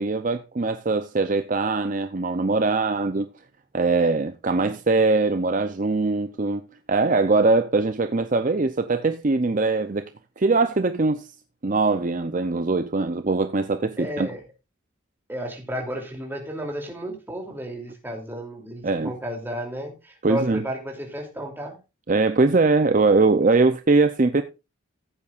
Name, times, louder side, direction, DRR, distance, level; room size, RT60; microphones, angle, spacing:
voice 1, 0.0-3.3 3.7-6.6 6.9-10.1 10.4-11.3 11.6-14.3 18.8-19.1 20.2-20.6 22.1-24.4, right 3 dB, 40° right, 0.6 m, -21 dB
voice 2, 14.0-14.4 15.3-21.8, equal, 10° right, 2.9 m, -33 dB
15.5 x 8.5 x 2.5 m
head